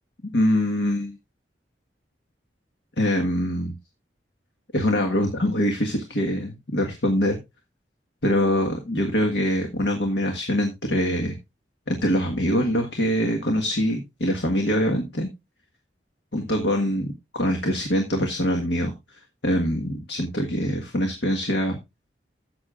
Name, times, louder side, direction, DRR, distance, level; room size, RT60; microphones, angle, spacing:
voice 1, 0.3-1.2 3.0-3.7 4.7-7.4 8.2-11.4 11.9-15.3 16.3-18.9 19.4-21.8, equal, 75° left, 2 dB, 1.6 m, -24 dB
13.5 x 8.4 x 2.5 m, 0.22 s
head